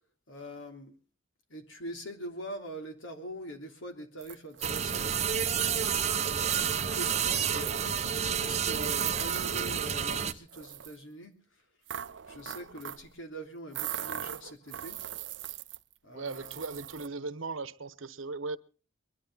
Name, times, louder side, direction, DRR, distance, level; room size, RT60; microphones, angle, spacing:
voice 1, 0.3-0.9 1.5-5.1 6.0-11.6 12.3-15.0 16.0-16.5, equal, 85° left, 3.2 m, -43 dB
sound 1, 4.2-10.2 10.5-11.0 11.9-13.1 13.7-15.9 16.3-17.1, right 11 dB, 65° right, 0.7 m, -40 dB
sound 2, 4.6-10.3, right 7 dB, 35° right, 1.0 m, -30 dB
voice 2, 16.1-18.6, right 3 dB, 85° right, 1.1 m, -38 dB
23.0 x 12.0 x 4.0 m
head